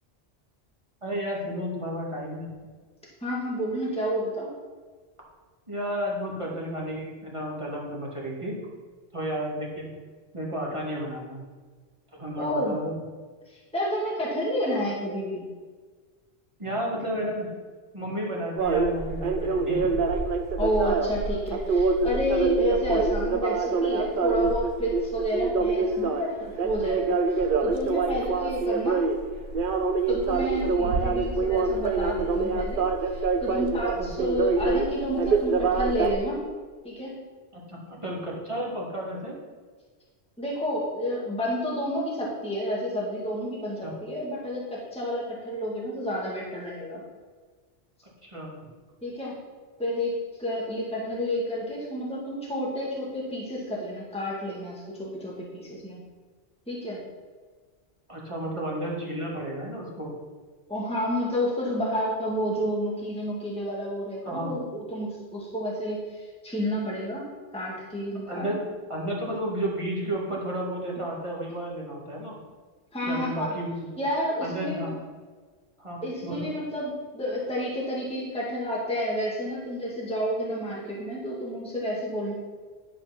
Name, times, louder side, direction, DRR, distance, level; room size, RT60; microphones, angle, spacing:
voice 1, 1.0-2.5 5.7-8.6 9.1-9.9 10.3-11.4 12.1-12.9 16.6-17.5 17.9-19.9 34.0-34.1 37.5-39.3 43.8-43.9 48.2-48.6 58.1-60.1 64.2-64.5 68.3-68.6 68.9-72.4 73.1-73.7 74.4-74.9 75.8-76.5, right 1 dB, 25° right, -4 dB, 2.2 m, -32 dB
voice 2, 3.2-4.5 12.4-12.8 13.5-15.4 20.6-29.0 30.1-36.4 36.8-37.1 40.4-47.0 49.0-49.3 49.8-56.0 56.7-57.0 60.7-68.6 72.9-73.5 74.0-74.9 76.0-82.3, equal, 5° left, -5 dB, 1.8 m, -30 dB
sound 1, 18.6-36.1, right 4 dB, 55° right, 0.8 m, -25 dB
11.0 x 4.9 x 5.9 m, 1.4 s
omnidirectional pair, 1.1 m